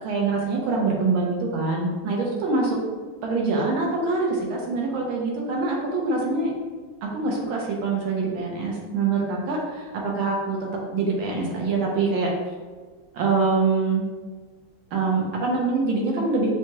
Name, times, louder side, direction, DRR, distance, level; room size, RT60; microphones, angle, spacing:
voice 1, 0.0-2.8 3.2-6.5 7.0-10.6 10.9-12.3 13.1-14.1 14.9-16.5, right 3 dB, 80° right, -1 dB, 1.6 m, -24 dB
5.9 x 2.3 x 2.9 m, 1.5 s
omnidirectional pair, 2.2 m